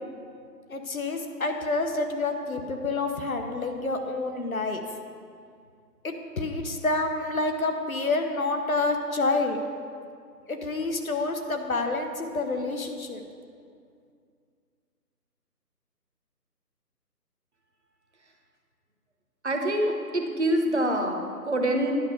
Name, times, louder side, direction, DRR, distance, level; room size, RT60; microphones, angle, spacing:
voice 1, 0.7-4.8 6.0-9.6 10.5-13.2, left 3 dB, 60° left, 5 dB, 1.1 m, -28 dB
voice 2, 19.4-21.9, right 1 dB, 45° right, 3 dB, 1.0 m, -26 dB
10.5 x 5.2 x 6.8 m, 2.3 s
figure-of-eight pair, 155°, 49 cm